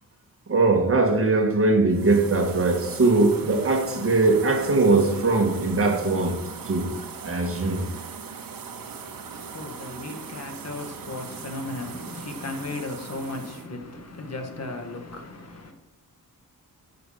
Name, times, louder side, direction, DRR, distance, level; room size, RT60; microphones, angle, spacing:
voice 1, 0.5-6.4 6.7-7.0 7.2-7.8, right 3 dB, 40° right, 1.9 m, -21 dB
sound 1, 1.9-13.7, right 6 dB, 70° right, 1.4 m, -39 dB
voice 2, 9.0-15.7, left 2 dB, 45° left, 1.7 m, -36 dB
11.0 x 7.0 x 5.8 m
wide cardioid pair, 140°, 35 cm